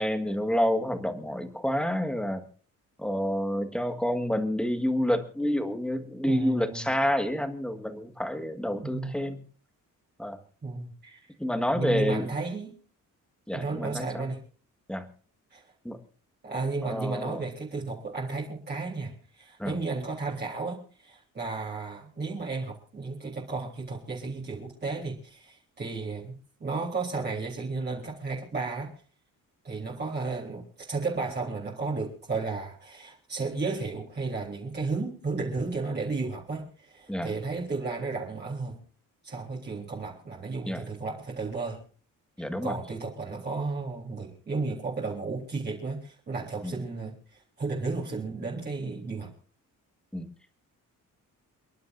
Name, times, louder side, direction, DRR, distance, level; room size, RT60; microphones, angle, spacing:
voice 1, 0.0-2.4 3.0-9.4 10.2-10.4 11.4-12.2 13.5-14.3 14.9-15.1 15.8-16.0 16.8-17.4 19.6-19.8 37.1-37.3 40.7-40.8 42.4-42.7 46.6-46.7 50.1-50.3, equal, 5° left, 7 dB, 1.7 m, -28 dB
voice 2, 6.2-6.9 8.8-9.1 10.6-11.3 11.7-12.7 13.5-14.4 15.5-15.6 16.4-26.3 26.6-28.9 29.6-38.8 39.2-41.8 42.4-49.3, right 3 dB, 30° right, -3 dB, 3.6 m, -33 dB
29.0 x 11.0 x 2.6 m, 0.41 s
cardioid pair, 155°, 32 cm